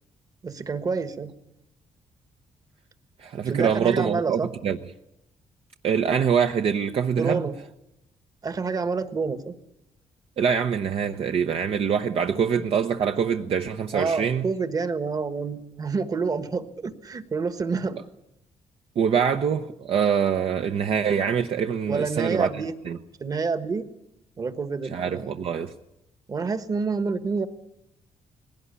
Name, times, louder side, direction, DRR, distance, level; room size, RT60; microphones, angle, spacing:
voice 1, 0.4-1.3 3.4-4.5 7.2-7.5 8.4-9.5 13.9-18.0 21.9-22.7 23.2-23.9 24.4-25.3 26.3-27.5, right 4 dB, 30° right, 1.4 m, -28 dB
voice 2, 3.2-4.8 5.8-7.5 10.4-14.4 19.0-22.5 22.9-23.0 24.9-25.7, right 7 dB, 55° right, 0.8 m, -24 dB
20.0 x 17.0 x 9.7 m
cardioid pair, 145°, 12 cm